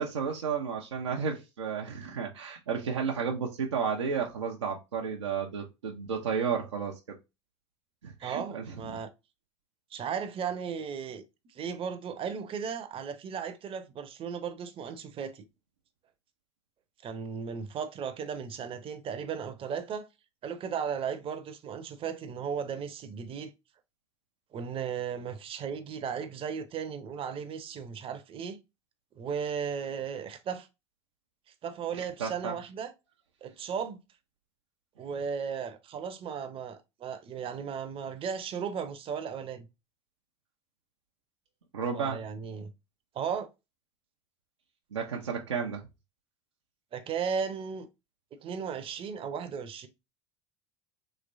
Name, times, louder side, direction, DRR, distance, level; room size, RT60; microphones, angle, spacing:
voice 1, 0.0-7.2 8.0-9.0 32.0-32.5 41.7-42.2 44.9-45.8, right 6 dB, 90° right, 0.6 m, -32 dB
voice 2, 8.2-9.1 9.9-11.2 11.5-15.4 17.0-20.1 20.4-23.5 24.5-28.6 29.2-30.7 31.6-32.9 33.4-34.0 35.0-39.7 41.9-42.7 43.1-43.5 46.9-47.9 48.3-49.9, right 6 dB, 40° right, 0.7 m, -35 dB
3.2 x 3.1 x 2.6 m
hypercardioid pair, 75°, 15 cm